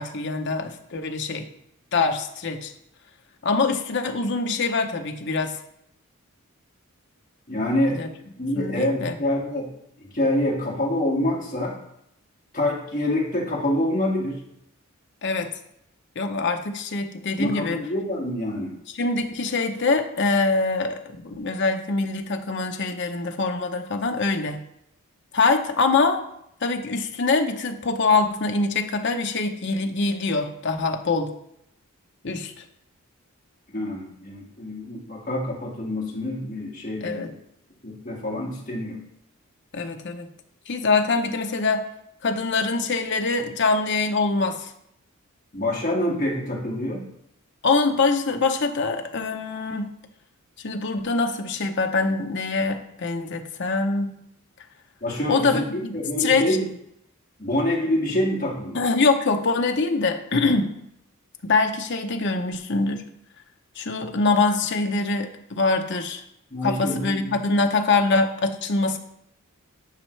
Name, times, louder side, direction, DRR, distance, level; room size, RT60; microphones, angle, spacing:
voice 1, 0.0-1.5 1.9-2.7 3.4-5.6 7.9-8.1 8.5-9.2 15.2-15.5 16.2-17.8 19.0-24.6 25.3-26.2 26.6-31.3 32.2-32.6 37.0-37.3 39.7-40.3 40.7-41.8 42.2-44.7 47.6-49.9 50.6-54.2 55.3-56.6 58.7-60.8 61.4-63.0 63.8-66.2 66.6-69.0, left 3 dB, 50° left, 5 dB, 0.7 m, -24 dB
voice 2, 7.5-8.0 8.4-9.7 10.0-11.8 12.5-14.4 17.4-18.8 33.7-37.3 37.8-39.0 45.5-47.1 55.0-55.7 55.9-56.7 57.4-58.8 66.5-67.3, left 1 dB, 35° left, -4 dB, 2.0 m, -26 dB
10.5 x 5.4 x 3.3 m, 0.77 s
head